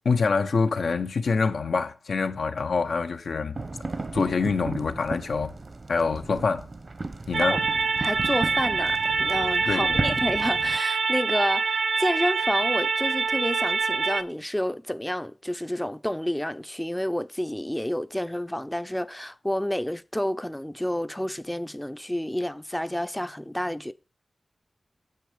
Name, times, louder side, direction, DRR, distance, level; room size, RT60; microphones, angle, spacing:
voice 1, 0.0-3.6 4.1-5.5 5.9-6.7 7.3-7.7 9.7-10.2, left 4 dB, 85° left, 0.9 m, -25 dB
sound 1, 3.5-10.8, right 3 dB, 50° right, 1.1 m, -35 dB
sound 2, 7.3-14.2, right 4 dB, 85° right, 0.6 m, -25 dB
voice 2, 8.0-23.9, left 1 dB, 10° left, 0.5 m, -29 dB
9.3 x 7.5 x 5.0 m
cardioid pair, 60°, 0 cm